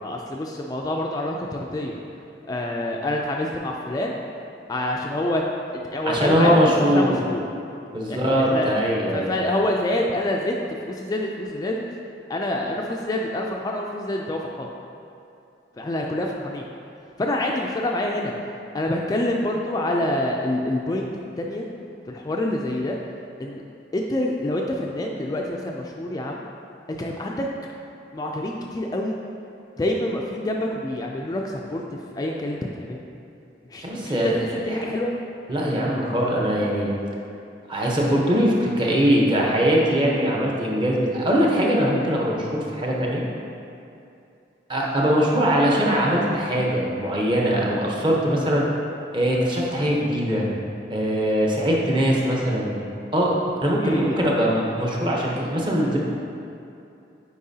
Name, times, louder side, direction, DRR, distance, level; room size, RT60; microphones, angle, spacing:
voice 1, 0.0-2.0 2.5-4.2 4.7-5.4 5.9-7.5 8.1-8.8 9.1-10.6 10.8-11.8 12.3-14.7 15.8-16.6 17.2-18.3 18.7-21.1 21.4-21.7 22.1-23.0 23.4-23.6 23.9-26.5 26.9-27.5 28.1-29.2 29.8-31.8 32.1-33.0 33.7-35.1 53.7-54.2, left 1 dB, 20° left, 0 dB, 0.3 m, -27 dB
voice 2, 6.1-7.2 7.9-9.3 33.8-34.4 35.5-36.9 37.7-43.2 44.7-48.7 49.1-50.5 50.9-52.7 53.1-56.0, equal, 25° right, -3 dB, 0.8 m, -21 dB
8.5 x 4.6 x 2.7 m, 2.7 s
head